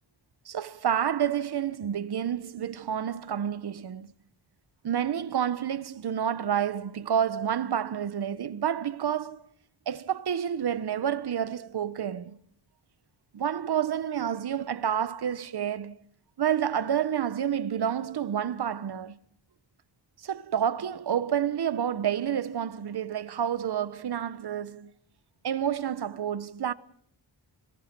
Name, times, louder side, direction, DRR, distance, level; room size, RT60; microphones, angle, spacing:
voice 1, 0.5-4.1 4.8-9.5 9.9-12.4 13.3-16.0 16.4-19.2 20.2-24.9 25.4-26.7, right 9 dB, 60° right, 1.0 m, -29 dB
27.0 x 19.0 x 6.1 m
wide cardioid pair, 95°, 44 cm